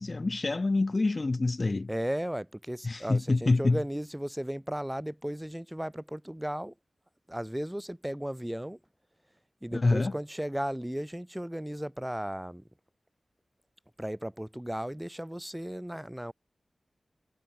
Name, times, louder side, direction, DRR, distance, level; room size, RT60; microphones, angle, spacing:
voice 1, 0.0-1.9 2.8-3.8 9.7-10.1, left 3 dB, 40° left, 1.8 m, -26 dB
voice 2, 1.9-6.7 7.3-8.8 9.6-12.7 14.0-16.3, equal, 5° right, 3.4 m, -35 dB
wide cardioid pair, 90°, 0 cm